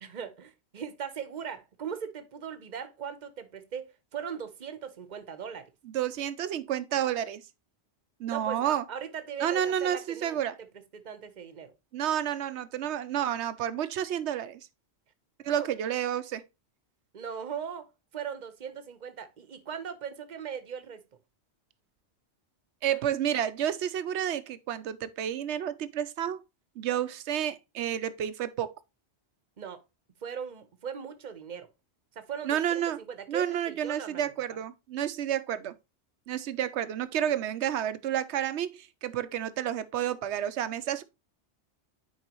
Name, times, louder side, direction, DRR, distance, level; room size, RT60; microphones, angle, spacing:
voice 1, 0.0-5.7 8.3-10.7 10.9-11.7 15.5-15.7 17.1-21.0 22.9-23.0 29.6-29.8 30.2-31.7 32.1-32.6 33.0-34.3 34.5-34.6, right 7 dB, 45° right, 0.9 m, -39 dB
voice 2, 5.9-7.4 8.2-8.8 9.4-10.6 11.9-14.6 15.4-16.4 22.8-26.4 26.8-28.7 32.5-33.0 33.3-35.7 36.3-41.0, right 10 dB, 85° right, 1.0 m, -30 dB
9.2 x 4.8 x 2.9 m
omnidirectional pair, 1.1 m